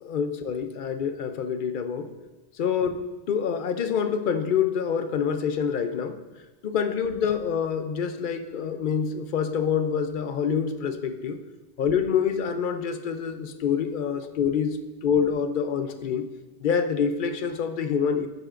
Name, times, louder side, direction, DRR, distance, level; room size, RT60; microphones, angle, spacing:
voice 1, 0.0-2.1 2.6-6.2 6.6-11.4 11.8-16.3 16.6-18.3, left 7 dB, 55° left, 9 dB, 0.7 m, -26 dB
12.0 x 7.9 x 2.5 m, 1.2 s
omnidirectional pair, 1.1 m